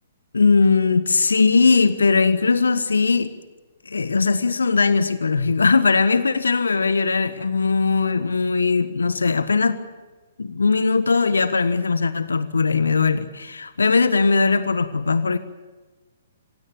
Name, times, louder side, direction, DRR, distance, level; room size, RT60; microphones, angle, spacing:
voice 1, 0.3-3.3 3.8-9.8 10.4-15.4, left 4 dB, 80° left, 13 dB, 1.3 m, -19 dB
27.0 x 16.5 x 9.0 m, 1.3 s
figure-of-eight pair, 125°, 0 cm